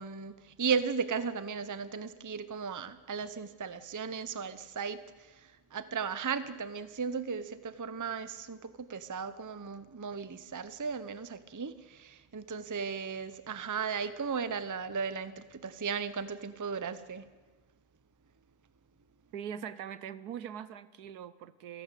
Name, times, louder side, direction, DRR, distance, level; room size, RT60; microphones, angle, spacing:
voice 1, 0.0-5.0 5.7-17.3, right 6 dB, 20° right, 12 dB, 0.6 m, -36 dB
voice 2, 19.3-21.8, right 8 dB, 85° right, 15 dB, 1.4 m, -42 dB
26.5 x 12.5 x 8.3 m, 1.3 s
omnidirectional pair, 1.6 m